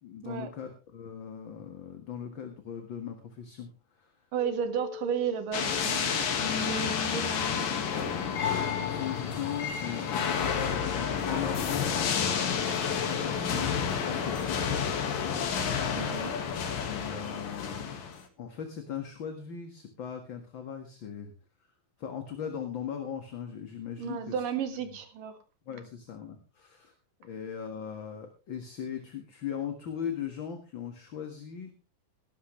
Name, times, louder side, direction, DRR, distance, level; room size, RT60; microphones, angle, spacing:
voice 1, 0.0-4.1 8.8-15.4 16.9-18.0 18.4-21.3 22.0-24.4 25.7-26.9 27.2-31.7, left 8 dB, 45° left, 5 dB, 2.1 m, -39 dB
voice 2, 4.3-7.7 14.5-14.6 16.0-16.3 24.0-25.4, right 8 dB, 85° right, 8 dB, 3.5 m, -34 dB
sound 1, 4.4-12.2, left 9 dB, 65° left, 1.1 m, -42 dB
sound 2, 5.5-18.2, left 7 dB, 90° left, 3.5 m, -30 dB
18.0 x 12.0 x 3.3 m, 0.32 s
omnidirectional pair, 3.7 m